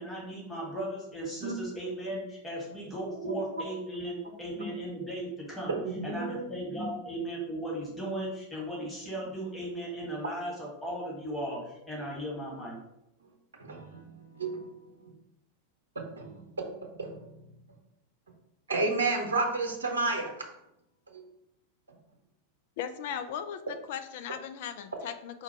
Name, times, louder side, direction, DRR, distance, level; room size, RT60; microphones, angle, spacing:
voice 1, 0.0-12.8, right 1 dB, 10° left, -3 dB, 1.5 m, -37 dB
voice 2, 5.7-6.4 6.7-6.9 13.6-14.7 16.0-16.7 17.0-17.3 18.7-20.3, right 3 dB, 70° right, 1 dB, 0.8 m, -31 dB
voice 3, 22.8-25.4, left 8 dB, 50° left, 9 dB, 0.4 m, -38 dB
4.4 x 2.3 x 4.4 m, 0.85 s
figure-of-eight pair, 90°, 0 cm